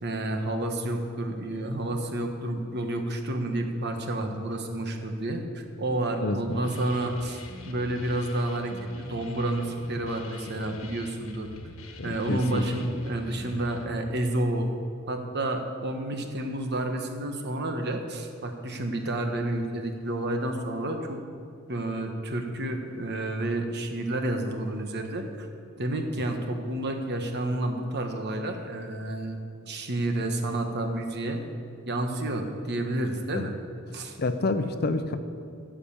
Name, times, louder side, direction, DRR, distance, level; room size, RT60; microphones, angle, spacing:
voice 1, 0.0-8.7 9.0-11.5 12.0-14.7 15.1-21.2 21.7-25.5 25.8-29.4 29.7-31.4 31.9-33.5 33.9-34.2, right 1 dB, 55° right, 4 dB, 1.2 m, -30 dB
voice 2, 6.2-6.7 12.0-12.6 33.3-33.4 34.2-35.2, left 2 dB, 50° left, 9 dB, 0.7 m, -28 dB
sound 1, 6.5-13.8, left 2 dB, 75° left, 1.2 m, -44 dB
15.0 x 5.1 x 7.2 m, 2.5 s
head